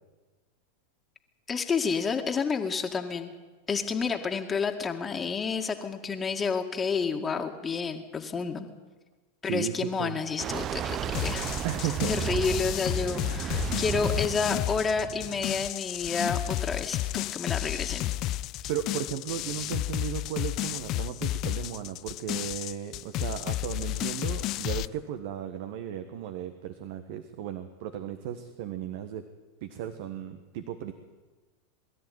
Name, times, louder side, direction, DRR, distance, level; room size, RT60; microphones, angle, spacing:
voice 1, 1.5-3.3 3.7-8.7 9.4-11.6 11.8-18.1 19.6-19.7, left 5 dB, 20° left, 4 dB, 2.2 m, -30 dB
voice 2, 9.4-10.1 11.6-12.2 18.7-29.2 29.6-30.9, right 10 dB, 60° right, 9 dB, 1.5 m, -35 dB
sound 1, 10.4-15.7, right 10 dB, 35° right, 0.7 m, -34 dB
sound 2, 11.1-24.9, left 15 dB, 45° left, 0.5 m, -32 dB
22.5 x 13.0 x 9.5 m, 1.2 s
hypercardioid pair, 90°, 0 cm